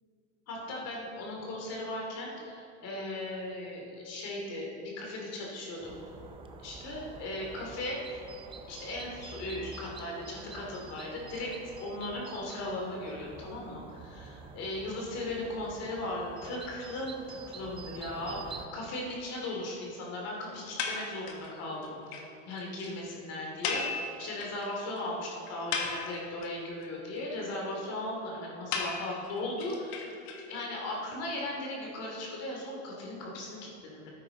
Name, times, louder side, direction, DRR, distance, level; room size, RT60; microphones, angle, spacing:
voice 1, 0.5-6.0 6.6-8.2 8.7-30.2 30.5-34.1, left 1 dB, 45° left, -2 dB, 2.6 m, -37 dB
sound 1, 5.8-18.7, right 5 dB, 15° right, 0.5 m, -48 dB
sound 2, 20.8-21.5 21.8-21.9 22.1-22.2 22.5-22.6 22.8-22.9 23.6-24.6 25.0-25.1 25.5-26.5 28.7-30.7, left 5 dB, 60° left, 1.6 m, -35 dB
12.5 x 9.2 x 3.9 m, 2.9 s
supercardioid pair, 140°, 36 cm